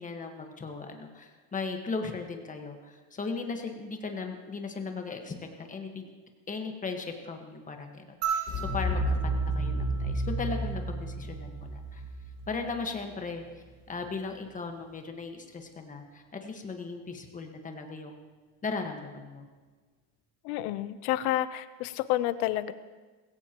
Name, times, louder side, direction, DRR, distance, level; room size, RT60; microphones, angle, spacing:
voice 1, 0.0-6.1 6.5-12.0 12.5-13.4 13.9-18.2 18.6-19.5, left 4 dB, 20° left, 4 dB, 1.5 m, -37 dB
sound 1, 8.2-10.8 12.4-12.5, right 7 dB, 70° right, 5.8 m, -36 dB
sound 2, 8.5-13.3, right 1 dB, 40° left, 1.8 m, -31 dB
voice 2, 20.4-22.7, left 14 dB, 70° left, 13 dB, 0.9 m, -29 dB
20.5 x 17.0 x 3.0 m, 1.4 s
cardioid pair, 150°, 44 cm